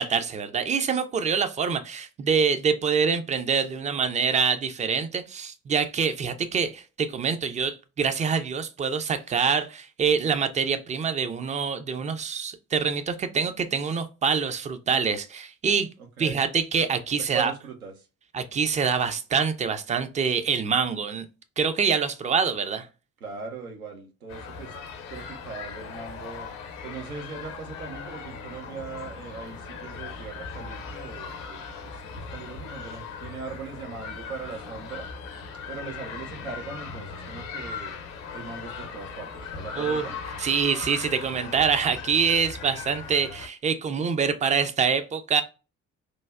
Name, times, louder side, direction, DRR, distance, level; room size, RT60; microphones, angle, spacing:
voice 1, 0.0-15.9 16.2-17.5 18.3-21.3 21.6-22.9 39.8-40.1 40.4-45.4, right 6 dB, 20° right, 0.3 m, -25 dB
voice 2, 16.2-16.5 17.1-18.1 23.2-24.7 25.1-26.5 26.8-35.1 35.7-37.9 38.3-40.2, right 5 dB, 90° right, 0.6 m, -39 dB
sound 1, 24.3-43.5, left 5 dB, 70° left, 0.7 m, -39 dB
3.2 x 2.2 x 2.3 m
figure-of-eight pair, 45°, 42 cm